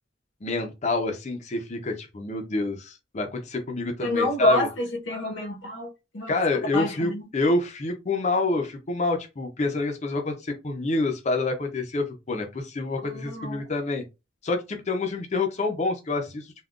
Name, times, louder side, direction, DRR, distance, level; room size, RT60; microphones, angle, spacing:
voice 1, 0.4-4.7 6.3-14.0 14.4-16.5, left 2 dB, 35° left, 0.5 m, -27 dB
voice 2, 4.0-6.3 6.7-7.3 13.0-13.7, left 1 dB, 80° left, 0.9 m, -28 dB
3.5 x 2.2 x 2.4 m
head